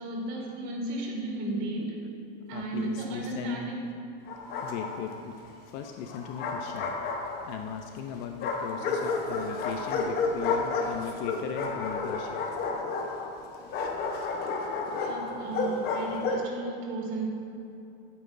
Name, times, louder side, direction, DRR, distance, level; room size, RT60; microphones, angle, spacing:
voice 1, 0.0-2.1 2.5-3.8 15.0-17.3, right 2 dB, 60° right, 0 dB, 2.1 m, -34 dB
voice 2, 2.5-3.6 4.5-12.4, left 7 dB, 50° left, 5 dB, 0.6 m, -38 dB
Bark, 4.3-5.2 6.1-7.7 8.4-16.5, left 4 dB, 35° left, 0.9 m, -31 dB
13.0 x 8.6 x 2.6 m, 2.7 s
supercardioid pair, 150°, 29 cm